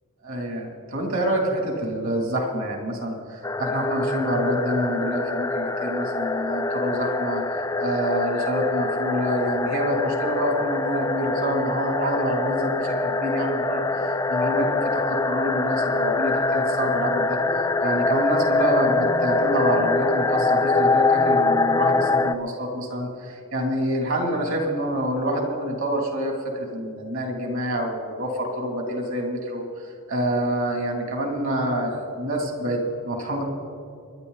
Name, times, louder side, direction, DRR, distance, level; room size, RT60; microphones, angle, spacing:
voice 1, 0.2-33.4, equal, 65° right, 1 dB, 3.1 m, -27 dB
sound 1, 3.4-22.3, left 3 dB, 15° left, 0.4 m, -24 dB
28.0 x 11.0 x 4.1 m, 2.3 s
head